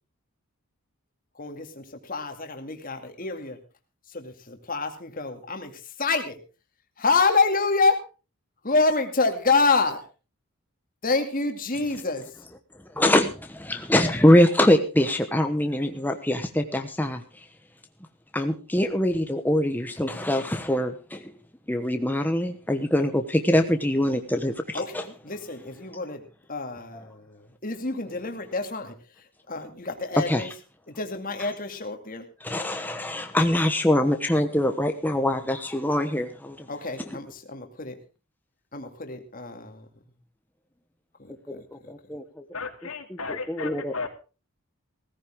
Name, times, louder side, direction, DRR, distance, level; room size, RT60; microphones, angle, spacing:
voice 1, 1.4-3.6 4.1-6.4 7.0-8.0 8.6-10.0 11.0-12.3 24.7-26.2 26.5-30.5 30.9-32.3 36.7-38.0 38.7-39.9 41.2-41.9, left 3 dB, 40° left, 2.3 m, -27 dB
voice 2, 12.9-17.2 18.3-21.3 21.7-25.0 26.9-27.0 30.3-30.5 32.4-36.7 41.5-42.2 43.3-43.9, left 1 dB, 10° left, 1.1 m, -23 dB
voice 3, 42.5-44.1, left 4 dB, 80° left, 2.7 m, -34 dB
17.5 x 14.5 x 3.6 m
head